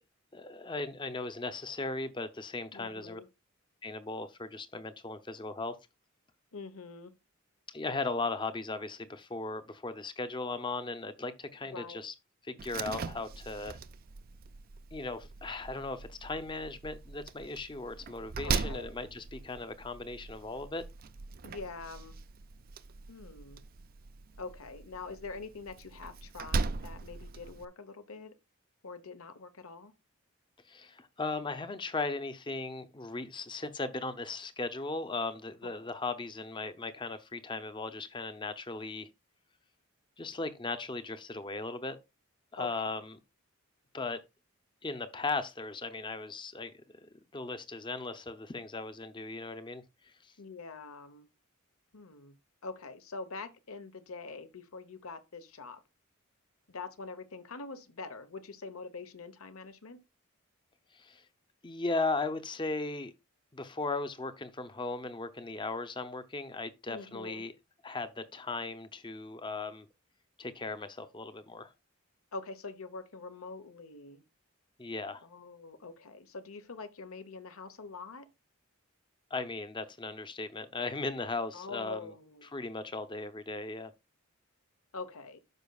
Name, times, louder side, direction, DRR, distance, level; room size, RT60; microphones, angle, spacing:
voice 1, 0.3-3.2 3.8-5.7 7.7-12.1 12.4-13.8 14.9-20.8 30.7-39.1 40.2-42.0 42.5-43.2 43.9-44.2 44.8-50.3 60.9-61.2 61.6-63.1 63.5-67.5 67.8-69.9 70.4-71.7 74.8-75.2 79.3-82.1 82.4-83.9, left 3 dB, 20° left, 0.7 m, -37 dB
voice 2, 2.7-3.3 6.5-7.1 11.7-12.0 18.4-18.9 21.4-22.2 23.1-23.6 24.4-28.3 28.8-29.9 35.6-35.9 42.6-42.9 50.4-51.3 51.9-52.4 52.6-55.8 56.7-60.0 66.9-67.4 72.3-74.2 75.2-78.3 81.5-82.5 84.9-85.4, left 4 dB, 85° left, 1.0 m, -44 dB
Slam, 12.6-27.6, right 4 dB, 45° right, 0.4 m, -40 dB
12.0 x 5.1 x 2.3 m
head